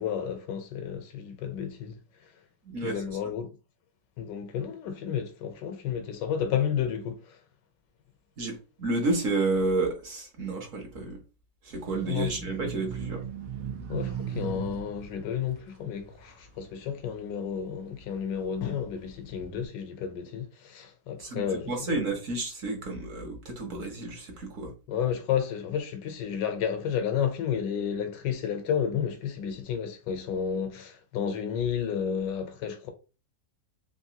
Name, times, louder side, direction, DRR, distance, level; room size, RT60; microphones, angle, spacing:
voice 1, 0.0-2.0 2.8-3.5 4.2-7.4 12.1-12.4 13.9-21.7 24.9-32.9, left 8 dB, 85° left, 1.3 m, -31 dB
voice 2, 2.7-3.0 8.4-11.2 11.6-13.2 21.2-24.7, right 3 dB, 55° right, 1.0 m, -31 dB
sound 1, 11.7-17.3 17.8-19.7, right 8 dB, 80° right, 1.3 m, -39 dB
3.4 x 2.6 x 2.8 m
omnidirectional pair, 1.8 m